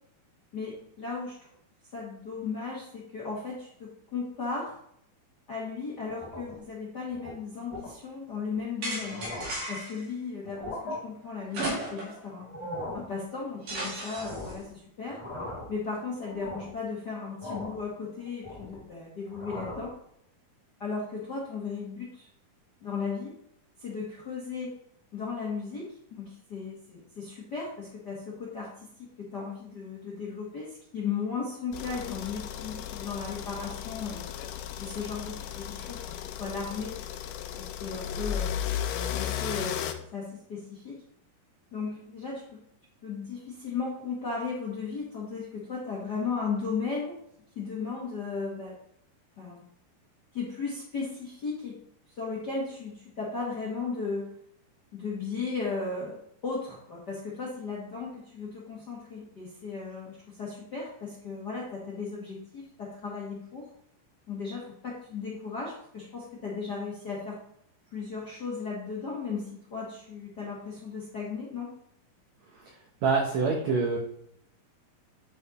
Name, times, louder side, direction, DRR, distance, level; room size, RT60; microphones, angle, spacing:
voice 1, 0.5-1.5 1.9-4.8 5.5-9.2 9.7-12.5 12.9-15.2 15.7-19.9 20.8-22.3 22.8-23.3 23.8-24.7 25.1-34.3 34.8-37.0 37.6-38.5 39.1-41.0 41.7-42.6 43.0-47.1 47.5-48.7 49.4-49.6 50.3-51.7 52.1-54.3 54.9-63.7 64.3-67.4 67.9-71.7, left 4 dB, 50° left, -4 dB, 1.2 m, -36 dB
sound 1, 6.1-6.7 7.1-7.3 7.7-7.9 8.5-8.6 9.0-9.7 10.4-11.0 12.4-13.1 14.1-14.7 15.0-15.8 16.2-16.8 17.4-17.8 18.2-18.9 19.2-19.9, left 1 dB, 20° left, 0.9 m, -39 dB
sound 2, 8.8-10.0 11.5-12.3 12.6-12.7 13.7-14.5, right 1 dB, 60° right, 3.7 m, -35 dB
sound 3, 31.7-39.9, left 10 dB, 80° left, 2.0 m, -35 dB
voice 2, 72.5-74.0, right 4 dB, 80° right, 1 dB, 1.6 m, -27 dB
9.7 x 5.1 x 4.1 m, 0.70 s
omnidirectional pair, 4.5 m